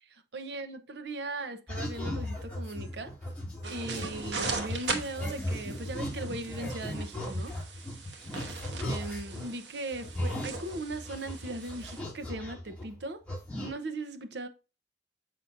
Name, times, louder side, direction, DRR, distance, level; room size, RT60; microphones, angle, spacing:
voice 1, 0.0-3.1 3.7-7.5 8.9-13.2 13.6-14.5, right 2 dB, 75° right, 0.8 m, -38 dB
sound 1, 1.7-9.6 9.9-13.0 13.3-13.7, left 1 dB, 10° left, 2.3 m, -37 dB
sound 2, 3.6-12.0, right 4 dB, 90° right, 1.1 m, -40 dB
6.7 x 5.8 x 2.5 m
head